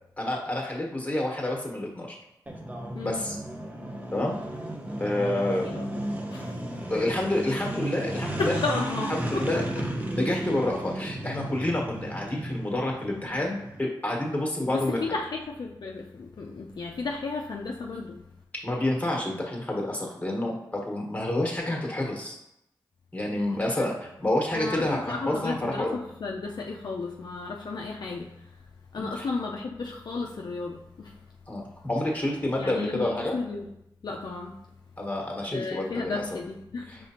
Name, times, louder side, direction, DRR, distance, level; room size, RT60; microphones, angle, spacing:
voice 1, 0.2-2.2 3.0-3.4 4.1-4.3 5.0-5.7 6.9-8.5 9.1-9.6 10.1-15.0 18.6-22.4 23.1-26.0 28.9-29.2 31.5-33.3 35.0-36.2 36.9-37.0, left 1 dB, 20° left, -1 dB, 1.3 m, -28 dB
sound 1, 2.5-13.8, right 1 dB, 20° right, 0.8 m, -34 dB
voice 2, 2.9-3.3 5.6-6.6 8.4-9.9 14.7-18.3 23.5-23.9 24.5-31.2 32.6-33.7 34.0-34.7 35.5-36.9, left 3 dB, 60° left, 0 dB, 0.4 m, -34 dB
4.9 x 3.4 x 2.9 m, 0.83 s
cardioid pair, 55°, 8 cm